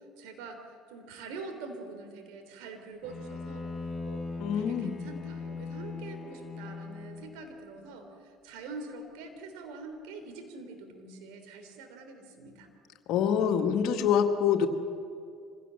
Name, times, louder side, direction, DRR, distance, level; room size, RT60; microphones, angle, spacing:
voice 1, 0.2-3.7 4.0-4.2 4.5-12.7, right 3 dB, 75° right, 5 dB, 3.4 m, -44 dB
Bowed string instrument, 3.0-7.5, left 4 dB, 15° left, 7.3 m, -39 dB
voice 2, 4.4-5.0 13.1-14.7, left 8 dB, 65° left, 5 dB, 1.9 m, -25 dB
25.5 x 16.5 x 7.6 m, 2.4 s
hypercardioid pair, 65°, 0 cm